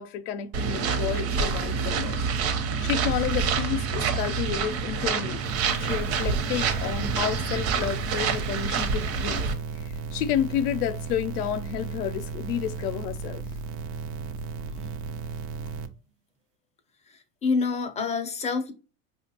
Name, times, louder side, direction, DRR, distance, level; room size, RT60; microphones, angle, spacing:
voice 1, 0.0-2.2 2.8-5.4 5.7-9.4 10.1-13.4, left 10 dB, 80° left, 0.6 m, -30 dB
sound 1, 0.5-9.5, right 5 dB, 55° right, 0.9 m, -27 dB
sound 2, 5.4-15.9, right 5 dB, 85° right, 0.7 m, -35 dB
voice 2, 14.7-15.0 15.6-15.7 17.1-18.7, left 4 dB, 15° left, 0.4 m, -28 dB
5.0 x 2.4 x 2.7 m
hypercardioid pair, 110°, 46 cm